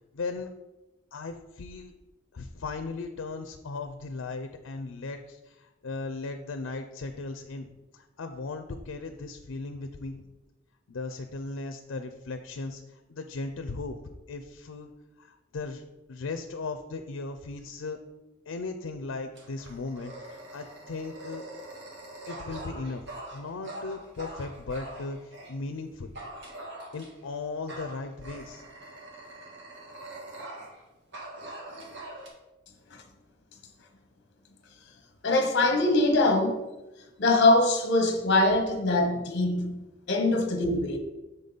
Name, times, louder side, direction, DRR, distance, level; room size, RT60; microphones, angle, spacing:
voice 1, 0.1-0.5 1.1-1.9 2.3-10.2 10.9-14.0 14.3-14.9 15.2-15.8 16.1-18.0 18.5-20.1 20.5-21.4 22.3-23.1 23.3-26.1 26.9-28.6, left 3 dB, 85° left, 0.5 m, -37 dB
Dog, 19.3-25.5 26.1-27.3 27.7-30.8 31.1-32.3, right 1 dB, 60° right, 1.7 m, -43 dB
voice 2, 35.2-36.6 37.2-39.8 40.1-41.0, left 2 dB, 60° left, 1.0 m, -23 dB
7.1 x 5.3 x 4.0 m
head